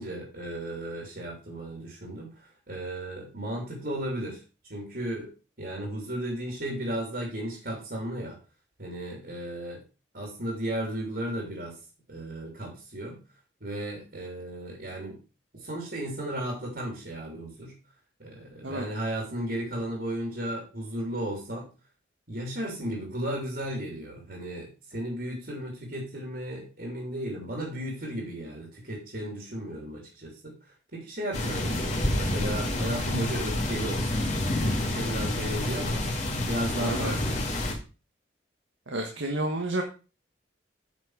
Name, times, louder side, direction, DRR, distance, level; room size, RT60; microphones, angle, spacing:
voice 1, 0.0-2.3 2.7-4.4 4.7-5.3 5.6-8.4 8.8-9.8 10.1-11.7 12.1-13.2 13.6-15.2 15.5-17.7 18.2-21.7 22.3-30.5 30.9-36.0 36.5-37.4, right 1 dB, 55° right, -1 dB, 3.1 m, -34 dB
sound 1, 31.3-37.7, left 1 dB, 35° left, 2.2 m, -28 dB
voice 2, 36.8-37.2 38.9-39.8, right 1 dB, 85° right, 2 dB, 1.5 m, -30 dB
9.1 x 6.1 x 4.8 m, 0.33 s
head